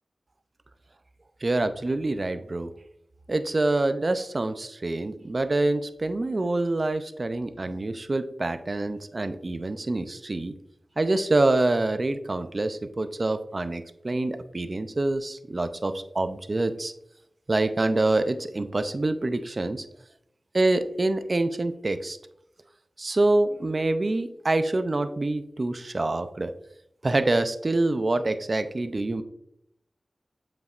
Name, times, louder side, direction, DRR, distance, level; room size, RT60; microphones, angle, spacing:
voice 1, 1.4-2.7 3.3-10.5 11.0-16.9 17.5-19.8 20.5-22.2 23.0-26.5 27.0-29.2, right 2 dB, 45° right, 10 dB, 0.5 m, -26 dB
8.0 x 5.3 x 2.4 m, 0.76 s
wide cardioid pair, 85°, 0 cm